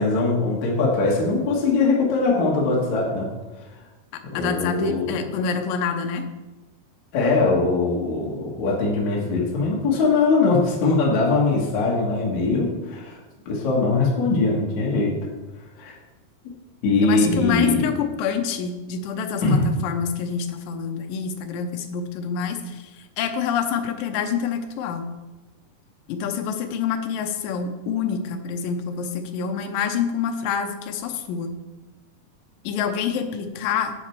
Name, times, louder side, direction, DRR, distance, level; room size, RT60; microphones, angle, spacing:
voice 1, 0.0-3.3 4.3-5.2 7.1-13.2 13.5-15.1 15.8-15.9 16.8-17.8 19.4-19.7, left 3 dB, 55° left, -3 dB, 2.7 m, -21 dB
voice 2, 4.3-6.2 17.0-25.1 26.1-31.5 32.6-33.9, left 7 dB, 75° left, 5 dB, 2.4 m, -27 dB
10.0 x 7.8 x 4.6 m, 1.1 s
omnidirectional pair, 4.5 m